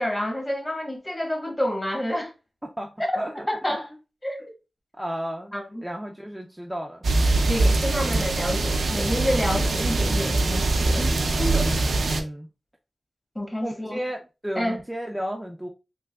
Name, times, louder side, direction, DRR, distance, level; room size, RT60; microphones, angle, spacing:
voice 1, 0.0-2.3 3.5-3.9 4.2-4.4 5.5-5.8 7.5-11.7 13.3-14.0 14.6-14.8, left 1 dB, 25° left, 1.2 m, -29 dB
voice 2, 2.6-3.8 4.9-5.5 5.8-7.1 11.5-12.5 13.6-15.7, equal, 10° right, 0.4 m, -33 dB
sound 1, 7.0-12.2, right 2 dB, 85° right, 0.5 m, -23 dB
3.3 x 2.8 x 2.3 m
cardioid pair, 60°, 0 cm